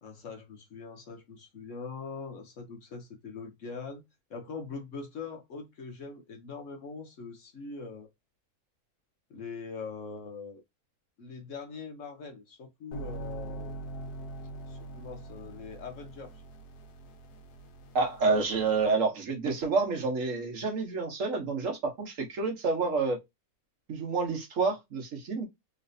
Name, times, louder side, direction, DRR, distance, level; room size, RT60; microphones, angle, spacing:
voice 1, 0.0-4.0 4.3-8.1 9.3-10.6 11.2-13.7 14.7-16.3, left 4 dB, 60° left, 1.0 m, -42 dB
sound 1, 12.9-18.9, right 1 dB, 85° left, 1.4 m, -43 dB
voice 2, 17.9-23.2 23.9-25.4, right 4 dB, 55° right, 1.3 m, -28 dB
3.2 x 3.2 x 2.6 m
omnidirectional pair, 1.7 m